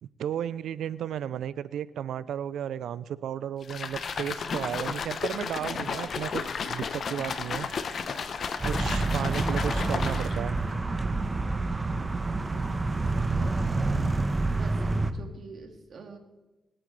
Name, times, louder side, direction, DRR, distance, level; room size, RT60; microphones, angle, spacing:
voice 1, 0.0-7.7 8.6-10.6, right 9 dB, 85° right, 17 dB, 0.4 m, -34 dB
sound 1, 3.6-10.5, left 5 dB, 65° left, 1.0 m, -33 dB
voice 2, 8.1-8.7 8.9-9.3 9.7-10.4 11.9-12.2 12.5-13.1 14.5-16.2, right 4 dB, 65° right, 3 dB, 2.0 m, -47 dB
sound 2, 8.6-15.1, right 3 dB, 30° right, 1.1 m, -28 dB
26.0 x 8.7 x 3.3 m, 1.1 s
cardioid pair, 60°, 0 cm